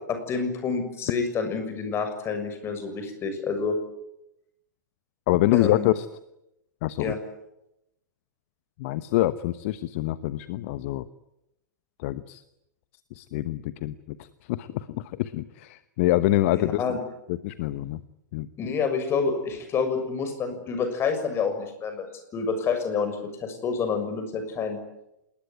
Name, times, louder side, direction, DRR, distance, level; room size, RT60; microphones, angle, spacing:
voice 1, 0.1-3.8 5.5-5.9 7.0-7.2 16.5-17.0 18.6-22.1 22.3-24.8, left 5 dB, 25° left, 8 dB, 6.7 m, -28 dB
voice 2, 5.3-6.1 6.8-7.1 8.8-11.1 12.0-12.4 13.1-16.8 17.3-18.0 18.3-18.5, left 16 dB, 45° left, 14 dB, 1.1 m, -26 dB
27.0 x 21.0 x 9.7 m, 0.87 s
figure-of-eight pair, 105°, 10 cm